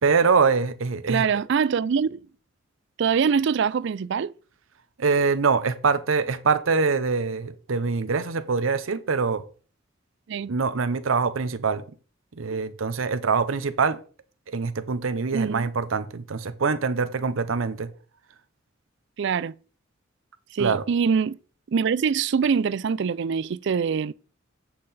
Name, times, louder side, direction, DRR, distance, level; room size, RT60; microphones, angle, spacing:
voice 1, 0.0-1.3 5.0-9.4 10.5-11.8 12.4-14.0 14.5-17.9 20.6-20.8, right 5 dB, 85° right, 0.7 m, -24 dB
voice 2, 1.1-2.2 3.0-4.3 10.3-10.5 15.3-15.7 19.2-19.6 20.5-21.4 21.7-24.1, right 6 dB, 60° right, 0.4 m, -24 dB
8.6 x 5.8 x 4.1 m
head